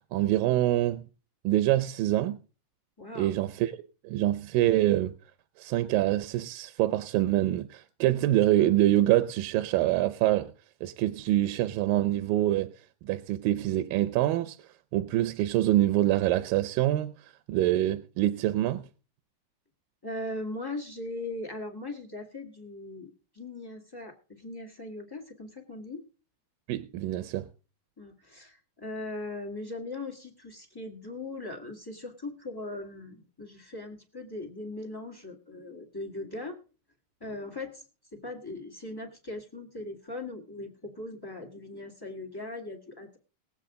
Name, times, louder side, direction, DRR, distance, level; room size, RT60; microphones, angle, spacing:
voice 1, 0.1-1.1 1.4-2.4 3.2-3.7 4.0-5.1 5.6-10.5 10.8-12.7 13.0-18.9 26.7-27.5, right 14 dB, 80° right, 2.3 m, -25 dB
voice 2, 3.0-3.3 20.0-26.0 28.0-36.6 37.2-43.2, left 2 dB, 15° left, 0.8 m, -39 dB
20.5 x 8.1 x 3.8 m
omnidirectional pair, 4.1 m